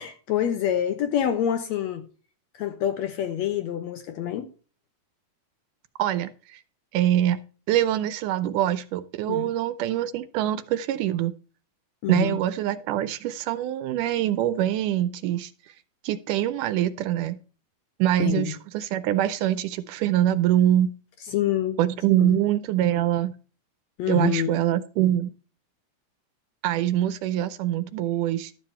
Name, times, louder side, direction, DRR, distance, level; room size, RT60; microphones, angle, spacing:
voice 1, 0.0-2.1 2.5-4.5 9.3-9.5 12.0-12.4 18.2-18.5 21.3-21.8 22.2-22.4 24.0-24.5, left 10 dB, 70° left, 1.8 m, -26 dB
voice 2, 6.0-6.6 6.9-7.4 7.7-11.3 12.1-15.5 16.0-17.4 18.0-21.0 21.8-23.4 24.1-25.3 26.6-28.5, right 12 dB, 80° right, 2.1 m, -24 dB
12.0 x 7.3 x 4.3 m
omnidirectional pair, 3.6 m